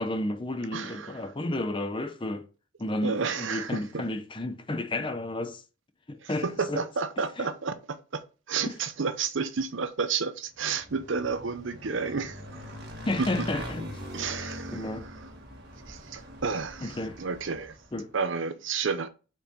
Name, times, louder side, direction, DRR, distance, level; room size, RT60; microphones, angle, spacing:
voice 1, 0.0-2.4 2.8-5.6 6.1-6.8 7.4-7.5 8.7-8.8 13.0-13.8 14.7-15.1 16.8-17.2 17.9-18.1, left 1 dB, 25° left, 0.6 m, -32 dB
voice 2, 0.7-1.3 3.0-4.1 6.2-8.2 8.5-12.4 13.2-13.3 14.1-15.3 15.9-17.8 18.1-19.1, right 5 dB, 65° right, 0.7 m, -31 dB
Motorcycle / Engine, 10.6-18.0, equal, 50° right, 1.6 m, -42 dB
5.7 x 4.6 x 5.2 m
head